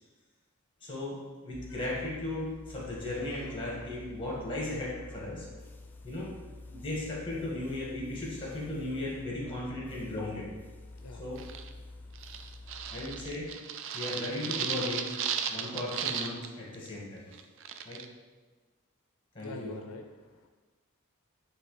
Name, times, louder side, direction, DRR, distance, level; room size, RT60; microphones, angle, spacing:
voice 1, 0.8-5.5 6.0-6.3 6.7-10.5 11.2-11.5 12.9-13.5 13.9-15.1 15.5-17.2 17.9-18.0 19.3-19.7, left 2 dB, 25° left, -5 dB, 1.8 m, -36 dB
sound 1, 1.5-13.3, left 2 dB, 10° left, 0.3 m, -48 dB
voice 2, 10.9-11.2 11.9-12.0 19.4-20.5, left 3 dB, 80° left, 4 dB, 0.5 m, -45 dB
sound 2, 11.4-11.7 12.1-16.5 16.7-16.9 17.3-18.0, right 8 dB, 65° right, 0.4 m, -35 dB
8.7 x 3.3 x 3.3 m, 1.3 s
head